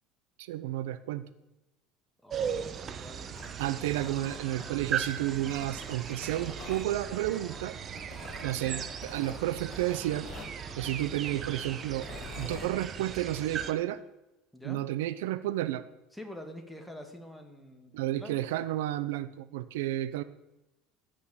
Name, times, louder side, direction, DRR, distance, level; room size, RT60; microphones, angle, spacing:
voice 1, 0.4-1.2 3.6-7.8 8.4-10.3 10.8-12.1 12.4-14.0 14.6-15.8 17.9-20.2, right 14 dB, 85° right, 15 dB, 0.7 m, -31 dB
voice 2, 2.2-3.7 4.0-4.3 8.7-8.8 14.5-14.8 16.1-18.6, left 1 dB, 5° left, 3 dB, 2.4 m, -47 dB
sound 1, 2.3-13.7, right 7 dB, 35° right, 1.0 m, -38 dB
Tearing, 3.2-4.9 5.4-6.9 8.0-8.5 9.0-10.6 11.9-12.7, left 6 dB, 45° left, 1.7 m, -47 dB
sound 2, 3.8-11.7, right 1 dB, 15° right, 3.5 m, -52 dB
15.5 x 6.5 x 7.4 m, 0.96 s
supercardioid pair, 105°, 0 cm